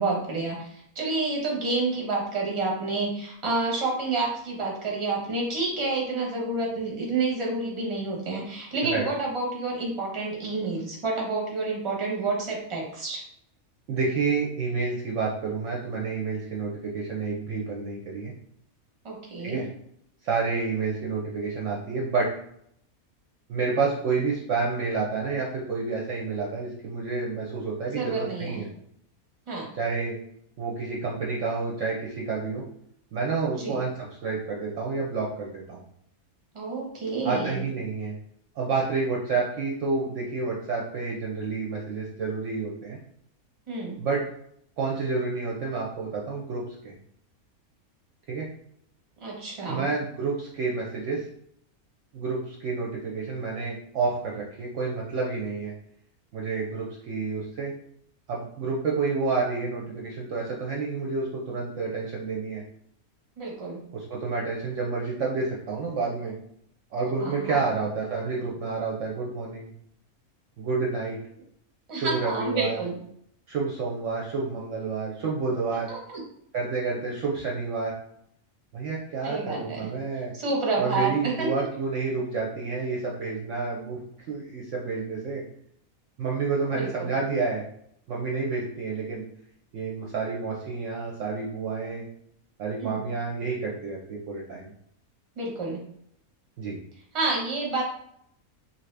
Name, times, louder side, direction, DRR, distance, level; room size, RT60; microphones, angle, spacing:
voice 1, 0.0-13.2 19.0-19.6 27.9-28.6 29.5-29.7 33.5-33.8 36.5-37.6 43.7-44.0 49.2-49.9 63.4-63.8 67.2-67.6 71.9-73.0 75.9-76.2 79.2-79.8 80.3-81.5 86.7-87.1 92.8-93.0 95.4-95.8 97.1-97.8, right 3 dB, 25° right, -2 dB, 0.7 m, -29 dB
voice 2, 13.9-18.3 19.4-19.7 20.2-22.3 23.5-28.7 29.8-30.2 30.6-32.6 33.1-35.8 37.2-38.1 38.6-43.0 44.0-44.2 44.8-46.9 48.3-48.5 49.7-51.2 52.1-55.7 56.3-57.7 58.3-62.6 63.9-66.3 66.9-69.7 70.6-71.2 71.9-72.8 73.5-75.9 76.5-77.9 78.7-80.3 80.8-84.0 84.3-85.4 86.2-87.6 88.1-89.2 89.7-92.1 92.6-94.7 96.6-96.8, right 4 dB, 65° right, -2 dB, 0.8 m, -29 dB
2.7 x 2.5 x 3.3 m, 0.70 s
omnidirectional pair, 1.5 m